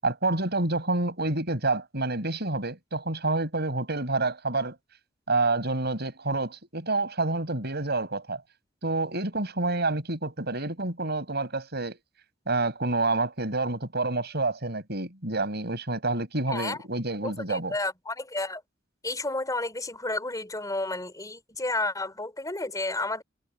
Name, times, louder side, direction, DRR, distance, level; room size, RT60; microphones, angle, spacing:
voice 1, 0.0-4.7 5.3-8.4 8.8-12.0 12.5-17.7, right 2 dB, 55° right, 6.9 m, -28 dB
voice 2, 16.5-16.8 17.2-18.6 19.0-23.2, left 2 dB, 20° left, 4.6 m, -31 dB
head